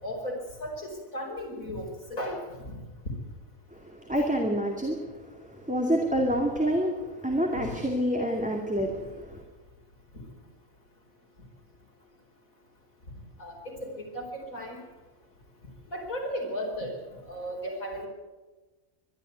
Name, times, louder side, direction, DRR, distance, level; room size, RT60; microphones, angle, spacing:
voice 1, 0.0-2.4 7.5-7.7 13.4-13.5 13.8-14.8 15.9-16.9 17.3-18.1, equal, 70° left, 0 dB, 5.1 m, -35 dB
voice 2, 3.9-5.0 5.7-6.9 7.2-9.4, equal, 5° right, 0 dB, 2.3 m, -27 dB
21.5 x 13.0 x 9.4 m, 1.2 s
omnidirectional pair, 1.5 m